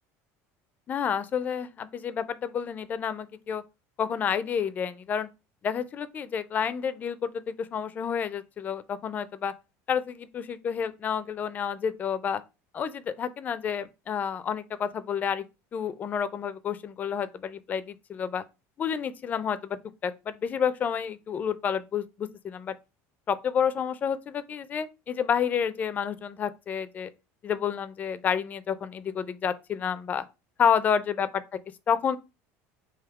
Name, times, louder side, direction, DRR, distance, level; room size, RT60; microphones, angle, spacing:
voice 1, 0.9-3.6 4.0-5.3 5.6-9.5 9.9-12.4 12.7-15.4 15.7-18.4 18.8-22.8 23.3-27.1 27.4-30.2 30.6-31.4 31.9-32.2, left 7 dB, 25° left, 0.4 m, -29 dB
3.5 x 2.7 x 4.6 m
cardioid pair, 160°, 7 cm